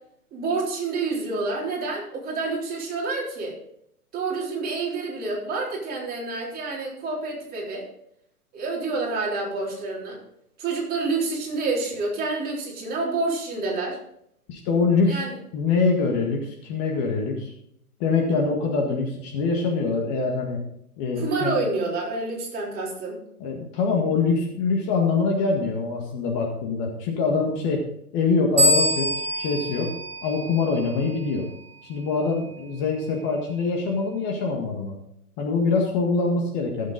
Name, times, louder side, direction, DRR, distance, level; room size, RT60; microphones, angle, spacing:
voice 1, 0.3-3.5 4.1-7.8 8.5-10.2 10.6-14.0 15.1-15.3 21.1-23.2, right 3 dB, 20° right, -4 dB, 3.8 m, -28 dB
voice 2, 14.5-15.2 15.5-17.5 18.0-20.6 21.0-21.6 23.4-27.8 28.1-29.9 30.2-31.5 31.8-35.0 35.4-36.9, left 4 dB, 30° left, 1 dB, 1.8 m, -24 dB
sound 1, 28.6-31.1, equal, 75° right, 1.8 m, -24 dB
16.0 x 7.6 x 4.0 m, 0.73 s
hypercardioid pair, 130°, 45 cm